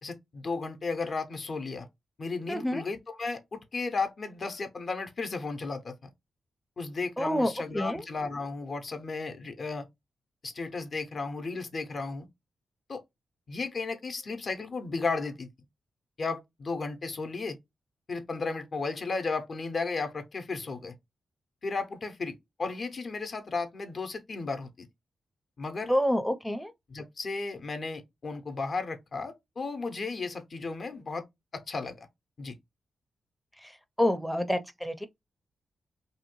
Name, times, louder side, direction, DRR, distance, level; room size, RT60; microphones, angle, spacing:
voice 1, 0.0-1.9 2.2-6.1 6.8-9.9 10.4-12.3 12.9-13.0 13.5-15.5 16.2-17.6 18.1-21.0 21.6-24.9 25.6-25.9 26.9-31.2 31.5-32.1 32.4-32.5, left 4 dB, 55° left, 0.6 m, -34 dB
voice 2, 2.5-2.8 7.2-8.0 25.9-26.7 33.6-33.7 34.0-35.1, equal, 5° left, 0.4 m, -28 dB
2.7 x 2.1 x 2.9 m
supercardioid pair, 50°, 0 cm